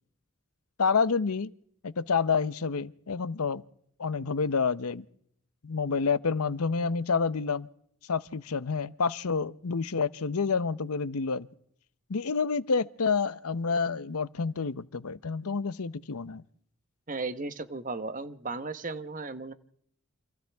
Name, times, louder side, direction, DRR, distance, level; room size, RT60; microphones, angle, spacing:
voice 1, 0.8-1.5 1.8-3.6 4.0-5.0 5.6-7.7 8.1-11.5 12.1-16.4, left 5 dB, 90° left, 0.7 m, -28 dB
voice 2, 17.1-19.5, right 3 dB, 35° right, 1.1 m, -35 dB
28.5 x 27.0 x 3.5 m
head